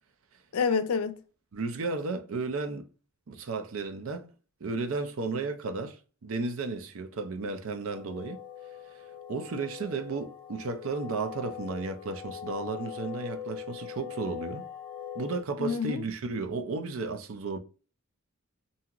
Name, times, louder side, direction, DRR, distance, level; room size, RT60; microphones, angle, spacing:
voice 1, 0.5-1.1 15.6-16.0, left 5 dB, 90° left, 0.4 m, -27 dB
voice 2, 1.5-2.8 3.3-4.3 4.6-6.0 6.2-8.4 9.3-14.6 15.1-17.6, right 3 dB, 70° right, 0.5 m, -33 dB
sound 1, 7.9-15.4, left 9 dB, 25° left, 0.8 m, -41 dB
2.7 x 2.4 x 2.9 m
head